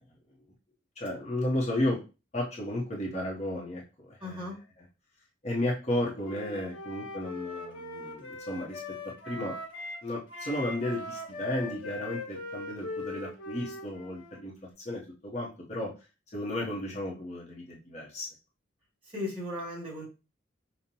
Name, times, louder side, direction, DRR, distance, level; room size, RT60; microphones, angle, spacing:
voice 1, 1.0-2.0 2.3-4.5 5.4-9.6 10.0-15.9 16.3-18.3, left 1 dB, 35° left, -3 dB, 0.8 m, -33 dB
voice 2, 4.2-4.6 19.1-20.0, left 2 dB, 25° right, -4 dB, 1.7 m, -36 dB
Wind instrument woodwind instrument, 6.2-10.0 10.3-14.4, left 2 dB, 70° left, 1.4 m, -40 dB
5.2 x 2.2 x 2.8 m, 0.31 s
head